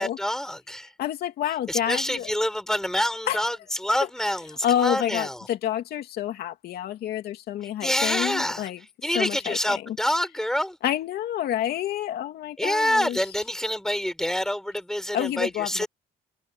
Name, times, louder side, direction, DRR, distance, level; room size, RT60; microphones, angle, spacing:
voice 1, 0.0-0.9 1.7-5.4 7.8-8.7 9.0-10.8 12.6-15.9, equal, 5° left, 6.0 m, -27 dB
voice 2, 1.0-2.3 3.3-3.4 4.6-8.8 9.1-10.0 10.8-13.2 15.1-15.8, left 11 dB, 70° left, 2.8 m, -28 dB
cardioid pair, 110°, 17 cm